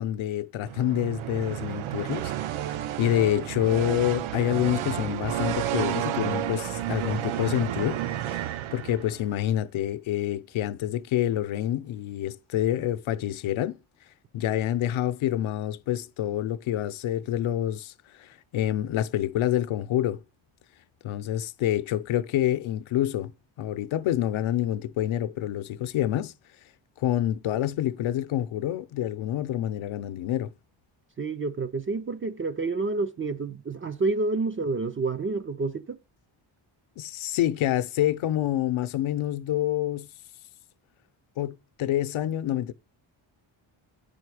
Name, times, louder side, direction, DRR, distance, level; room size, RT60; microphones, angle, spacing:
voice 1, 0.0-2.3 3.0-8.0 8.3-13.8 14.3-17.9 18.2-20.2 21.0-23.3 23.6-26.3 27.0-30.5 37.0-40.1 41.4-42.7, left 12 dB, 75° left, 0.7 m, -27 dB
sound 1, 0.6-9.3, right 11 dB, 75° right, 0.6 m, -31 dB
voice 2, 31.2-36.0, right 3 dB, 30° right, 0.3 m, -29 dB
9.1 x 5.4 x 4.7 m
wide cardioid pair, 145°, 48 cm